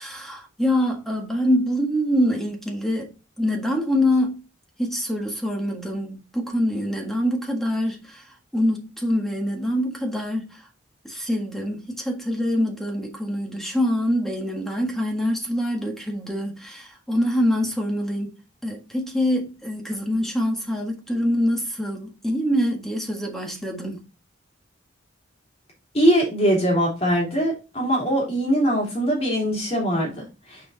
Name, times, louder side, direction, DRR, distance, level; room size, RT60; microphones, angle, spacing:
voice 1, 0.0-3.1 3.4-4.4 4.8-8.3 8.5-10.7 11.0-18.4 18.6-24.1, equal, ahead, 1.6 m, -25 dB
voice 2, 25.9-30.7, equal, 30° left, 3.0 m, -22 dB
6.5 x 4.9 x 4.1 m
head